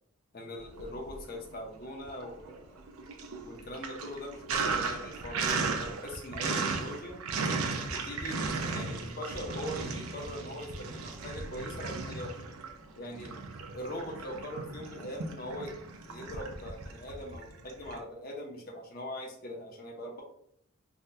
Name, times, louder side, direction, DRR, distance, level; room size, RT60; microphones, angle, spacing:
voice 1, 0.3-2.8 3.5-7.2 7.9-12.4 12.9-13.4 13.7-15.7 16.0-20.2, left 1 dB, 45° left, 0 dB, 0.6 m, -41 dB
Sink (filling or washing), 0.7-1.5 1.9-18.0, right 4 dB, 85° right, 0.4 m, -36 dB
3.4 x 2.2 x 2.6 m, 0.69 s
head